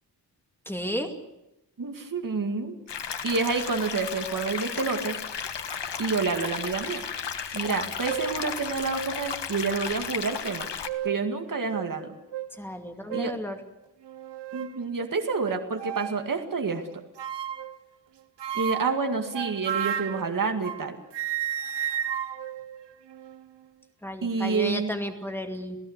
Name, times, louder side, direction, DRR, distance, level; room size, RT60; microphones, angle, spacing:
voice 1, 0.7-1.1 12.6-13.6 24.0-25.8, equal, 5° left, 4 dB, 2.4 m, -33 dB
voice 2, 1.8-2.7 3.2-5.2 6.0-7.0 7.5-10.7 11.0-12.1 13.1-13.4 14.5-16.8 18.5-21.0 24.2-24.9, right 4 dB, 50° right, 4 dB, 2.1 m, -28 dB
sound 1, 2.9-10.9, left 7 dB, 90° left, 1.5 m, -34 dB
sound 2, 7.6-7.7 8.0-8.4 9.2-9.3 10.5-11.3 11.7-11.9 12.3-12.5 13.1-13.4 14.0-14.8 15.8-16.2 17.2-17.8 18.4-20.9 21.1-23.5, right 10 dB, 85° right, 0.9 m, -33 dB
28.0 x 17.0 x 8.1 m, 0.89 s
wide cardioid pair, 145°, 41 cm